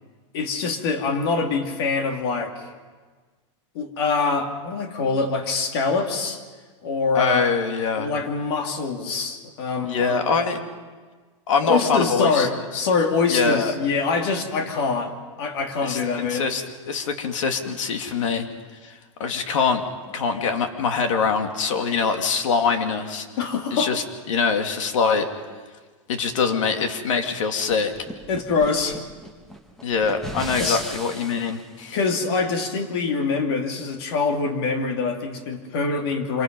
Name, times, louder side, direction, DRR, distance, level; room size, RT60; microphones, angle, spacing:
voice 1, 0.3-2.7 3.7-6.4 6.8-7.4 7.9-10.2 11.6-16.5 23.4-23.9 28.3-29.0 30.6-30.8 31.9-36.4, left 4 dB, 50° left, 4 dB, 2.6 m, -24 dB
voice 2, 7.1-8.1 9.9-10.6 11.5-12.5 13.3-13.7 15.8-16.6 16.9-18.5 18.8-18.9 19.2-19.8 20.1-23.3 23.7-25.3 26.1-27.9 29.8-32.0, left 5 dB, 80° left, 5 dB, 2.5 m, -23 dB
sound 1, 27.7-31.6, right 1 dB, ahead, 1.1 m, -37 dB
26.5 x 24.5 x 5.4 m, 1.4 s
supercardioid pair, 175°, 16 cm